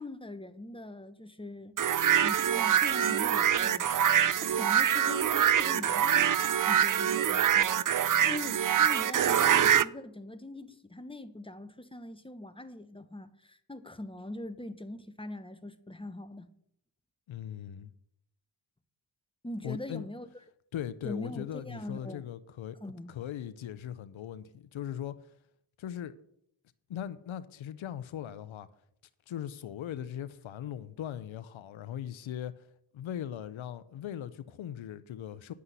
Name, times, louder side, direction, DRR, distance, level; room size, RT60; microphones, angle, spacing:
voice 1, 0.0-1.8 2.2-3.9 4.4-6.3 6.7-16.5 19.4-20.3 21.0-22.3 22.8-23.1, left 2 dB, 10° left, 1.1 m, -42 dB
sound 1, 1.8-9.8, right 9 dB, 45° right, 0.5 m, -25 dB
voice 2, 17.3-17.9 19.6-20.1 20.7-22.8 23.1-25.2 25.8-26.1 26.9-28.7 29.3-32.7 32.9-35.5, left 10 dB, 85° left, 0.7 m, -39 dB
9.7 x 5.7 x 8.0 m
cardioid pair, 50°, 46 cm